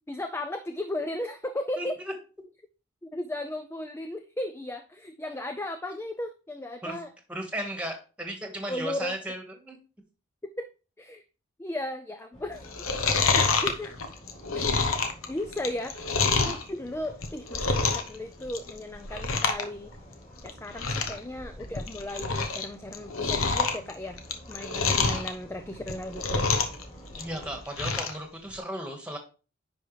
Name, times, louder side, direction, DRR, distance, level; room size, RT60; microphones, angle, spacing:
voice 1, 0.1-1.9 3.0-7.1 8.7-9.1 10.6-10.7 11.0-11.2 11.6-12.7 13.1-13.9 14.5-14.6 15.3-16.0 16.4-19.9 20.4-24.2 24.5-26.5, left 1 dB, 10° left, 7 dB, 0.4 m, -35 dB
voice 2, 1.8-2.1 6.8-7.0 7.3-9.8 27.2-29.2, right 1 dB, 5° right, 3 dB, 1.5 m, -35 dB
sound 1, 12.3-27.6, equal, 30° left, 3.3 m, -48 dB
Chewing mastication, 12.6-16.6 17.1-18.2 18.4-18.8 19.1-19.6 19.9-20.0 20.5-20.6 20.8-21.2 21.6-22.6 22.9-25.3 25.8-26.8 27.1-28.2 28.6-28.7, left 4 dB, 85° left, 1.0 m, -27 dB
10.0 x 4.8 x 3.2 m, 0.34 s
head